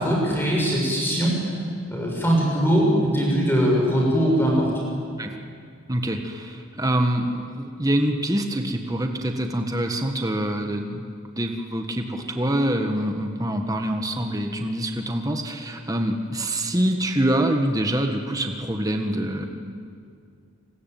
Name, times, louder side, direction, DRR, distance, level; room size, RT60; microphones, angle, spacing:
voice 1, 0.0-1.3 1.9-4.7, equal, 10° left, -2 dB, 6.7 m, -21 dB
voice 2, 5.9-19.5, right 1 dB, 15° right, 4 dB, 1.6 m, -25 dB
30.0 x 21.5 x 9.3 m, 2.3 s
head